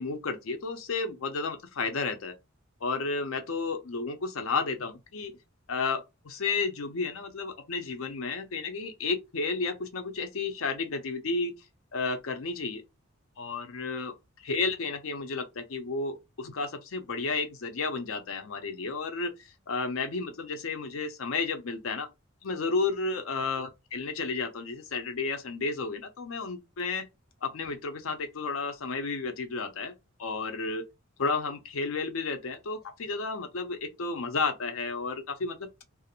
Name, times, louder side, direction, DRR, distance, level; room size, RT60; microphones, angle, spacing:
voice 1, 0.0-2.3 2.8-5.3 5.7-11.5 11.9-12.8 13.4-14.1 14.4-22.1 22.4-27.1 27.4-29.9 30.2-30.8 31.2-35.8, left 4 dB, 90° left, 0.6 m, -32 dB
2.4 x 2.0 x 2.8 m
head